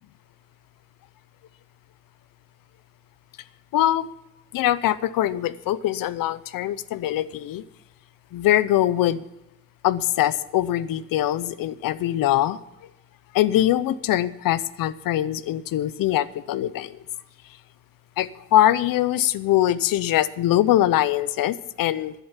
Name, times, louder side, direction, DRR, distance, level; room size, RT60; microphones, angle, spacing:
voice 1, 3.7-4.1 4.5-7.6 8.3-9.2 9.8-12.6 13.3-17.0 18.2-22.1, left 13 dB, 60° left, 17 dB, 0.7 m, -22 dB
11.5 x 11.0 x 5.7 m, 0.90 s
cardioid pair, 130°, 37 cm